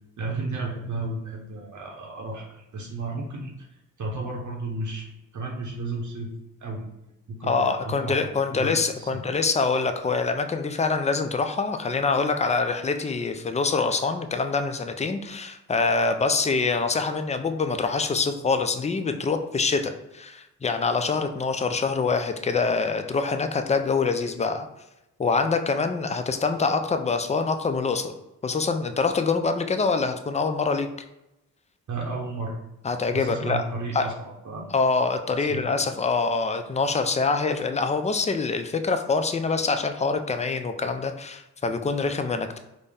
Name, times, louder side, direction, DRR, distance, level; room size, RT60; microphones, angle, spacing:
voice 1, 0.2-3.7 4.0-5.1 5.3-6.3 6.6-6.9 7.3-9.2 31.9-32.6 33.1-34.7 35.4-35.7, right 2 dB, 55° right, -2 dB, 0.8 m, -33 dB
voice 2, 7.4-24.7 25.2-28.1 28.4-30.9 32.8-33.6 33.9-34.1 34.7-42.6, left 4 dB, 20° left, 7 dB, 0.4 m, -25 dB
3.9 x 2.1 x 3.5 m, 0.91 s
supercardioid pair, 45°, 36 cm